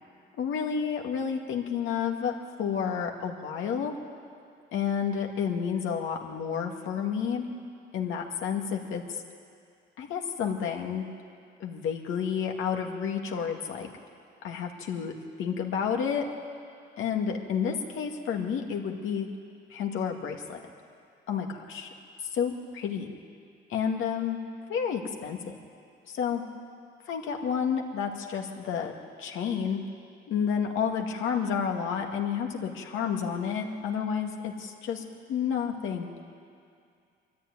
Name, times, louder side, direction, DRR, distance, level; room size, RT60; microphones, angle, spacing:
voice 1, 0.3-2.3 2.6-3.9 4.7-7.5 7.9-9.2 10.0-11.0 11.6-13.9 14.4-16.3 17.0-19.3 19.7-20.6 21.3-21.9 22.3-23.1 23.7-24.4 24.7-25.6 26.1-26.4 27.1-28.9 29.2-29.8 30.3-35.0 35.3-36.1, left 7 dB, 85° left, 2 dB, 2.2 m, -30 dB
22.0 x 13.5 x 9.4 m, 2.3 s
cardioid pair, 90°, 20 cm